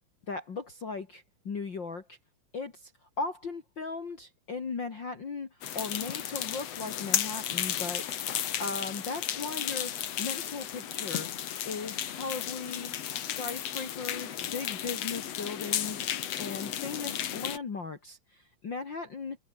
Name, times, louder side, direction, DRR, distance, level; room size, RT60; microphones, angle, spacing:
voice 1, 0.3-2.2 2.5-2.9 3.2-5.5 5.7-8.1 8.3-11.3 11.6-12.9 13.2-16.0 16.4-19.4, left 4 dB, 40° left, 2.7 m, -37 dB
sound 1, 5.6-17.6, left 10 dB, 60° left, 2.4 m, -34 dB
omnidirectional pair, 3.7 m